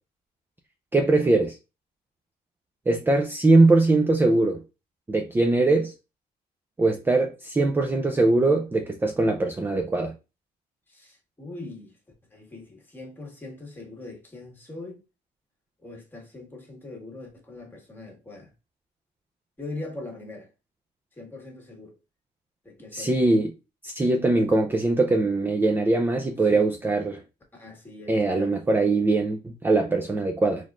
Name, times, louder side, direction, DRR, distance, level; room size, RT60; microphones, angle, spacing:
voice 1, 0.9-1.6 2.9-4.6 5.1-5.9 6.8-10.1 22.9-23.5 23.8-27.2 28.1-30.6, right 2 dB, 10° right, 0.4 m, -21 dB
voice 2, 10.9-11.9 12.3-15.0 15.8-18.5 19.6-20.5 21.1-22.0 22.6-23.1 26.5-26.7 27.5-28.6, left 2 dB, 10° left, 1.5 m, -41 dB
3.9 x 3.1 x 2.4 m
cardioid pair, 110°, 17 cm